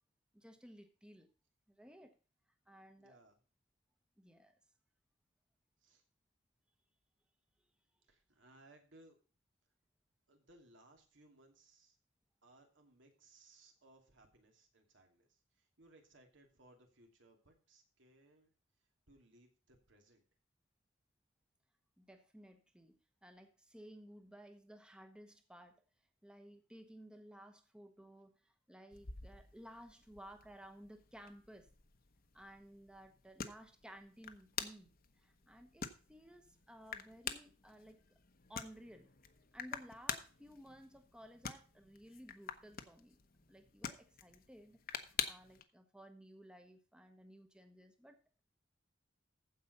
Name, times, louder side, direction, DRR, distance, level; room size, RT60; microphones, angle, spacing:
voice 1, 0.3-1.3 1.7-2.2 2.7-3.2 4.2-4.5 22.0-25.8 26.2-31.7 32.3-34.9 35.2-38.0 38.5-39.1 39.5-43.2 43.5-44.8 45.1-48.4, equal, 5° right, 6 dB, 1.0 m, -57 dB
voice 2, 3.0-3.4 5.8-6.0 8.1-9.2 10.3-12.0 12.4-18.5 19.1-20.2, right 2 dB, 80° right, 3 dB, 2.8 m, -65 dB
sound 1, 28.9-45.6, left 7 dB, 50° left, 1.0 m, -48 dB
15.0 x 5.1 x 5.4 m, 0.36 s
head